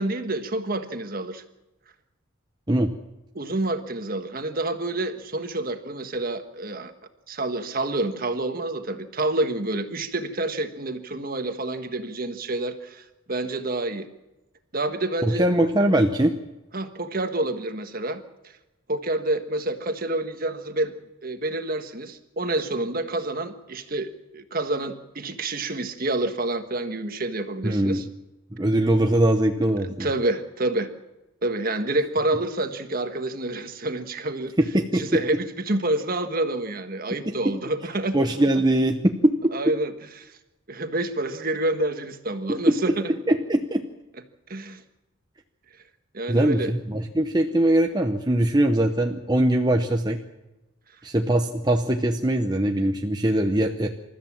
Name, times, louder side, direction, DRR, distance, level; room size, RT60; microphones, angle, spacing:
voice 1, 0.0-1.4 3.3-6.9 7.3-14.1 14.7-15.4 16.7-18.2 18.9-20.9 21.2-28.0 29.8-30.9 31.4-34.5 34.9-38.2 39.5-39.9 40.2-40.4 40.7-43.1 44.5-44.8 46.1-46.7, right 2 dB, 40° right, 7 dB, 1.6 m, -28 dB
voice 2, 15.2-16.3 27.6-28.0 28.5-30.1 34.6-35.0 37.4-37.5 38.1-39.5 42.5-42.8 43.3-43.8 46.3-50.2 51.0-53.9, right 1 dB, 20° right, 3 dB, 0.9 m, -21 dB
27.5 x 13.5 x 7.4 m, 1.0 s
head